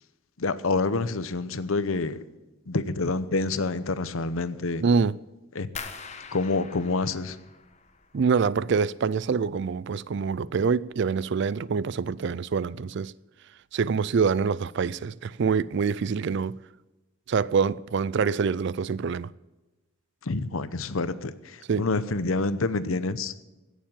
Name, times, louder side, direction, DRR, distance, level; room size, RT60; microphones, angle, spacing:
voice 1, 0.4-2.2 2.7-4.8 5.5-5.7 6.3-7.4 20.3-23.3, left 3 dB, 80° left, 0.8 m, -27 dB
voice 2, 4.8-5.2 8.1-13.1 13.7-16.6 17.3-19.3 21.7-21.9, right 5 dB, 55° right, 0.4 m, -25 dB
sound 1, 5.8-8.6 8.9-9.6 10.0-10.4 10.8-11.0, left 5 dB, 35° left, 1.2 m, -43 dB
16.0 x 7.3 x 8.9 m
head